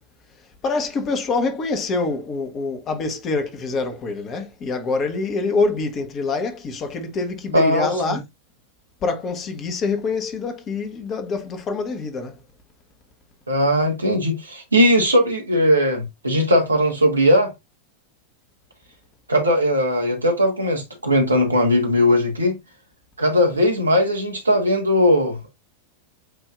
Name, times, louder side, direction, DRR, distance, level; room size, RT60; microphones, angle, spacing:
voice 1, 0.6-8.2 9.0-12.4, left 3 dB, 30° left, 1.1 m, -25 dB
voice 2, 7.5-8.2 13.5-17.5 19.3-22.5 23.2-25.5, equal, 80° right, 1.4 m, -19 dB
8.0 x 2.7 x 2.4 m
figure-of-eight pair, 90°, 0 cm